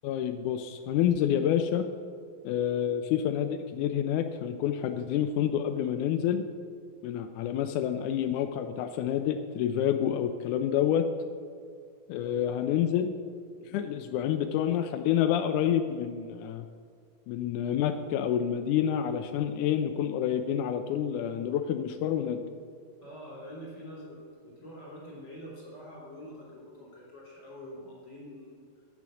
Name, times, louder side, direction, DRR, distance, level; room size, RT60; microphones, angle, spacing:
voice 1, 0.0-1.9 2.4-6.4 7.0-11.1 12.1-13.1 13.7-16.7 17.3-22.4, left 9 dB, 90° left, 8 dB, 1.7 m, -28 dB
voice 2, 23.0-28.8, equal, 35° left, -5 dB, 3.6 m, -46 dB
9.0 x 8.8 x 6.3 m, 2.1 s
omnidirectional pair, 4.0 m